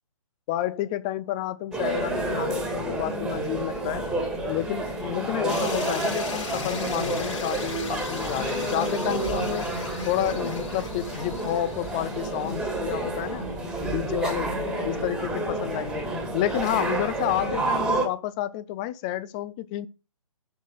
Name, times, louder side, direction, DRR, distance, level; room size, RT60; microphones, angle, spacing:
voice 1, 0.5-4.1 4.5-9.7 10.0-13.5 13.8-14.6 14.8-19.9, left 13 dB, 15° left, 0.3 m, -30 dB
sound 1, 1.7-18.1, right 2 dB, 5° right, 1.7 m, -29 dB
sound 2, 5.5-13.5, left 5 dB, 55° left, 4.4 m, -38 dB
10.5 x 4.0 x 6.5 m
hypercardioid pair, 145°, 18 cm